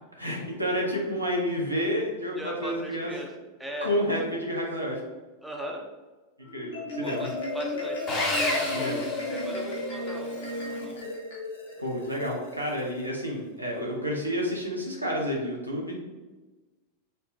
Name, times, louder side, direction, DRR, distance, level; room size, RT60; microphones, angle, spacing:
voice 1, 0.2-3.1 3.8-5.0 6.5-7.3 8.7-9.1 11.8-16.0, equal, 85° right, -2 dB, 0.7 m, -30 dB
voice 2, 2.4-3.3 3.6-3.9 5.4-5.8 7.0-8.1 8.3-8.6 9.3-11.0, right 1 dB, 5° right, 0 dB, 0.5 m, -38 dB
Marimba xylophone, 6.4-13.1, left 2 dB, 60° left, 0.7 m, -34 dB
Sawing, 8.1-10.0, left 2 dB, 30° left, 0.8 m, -31 dB
4.3 x 2.1 x 2.7 m, 1.2 s
figure-of-eight pair, 90°, 0 cm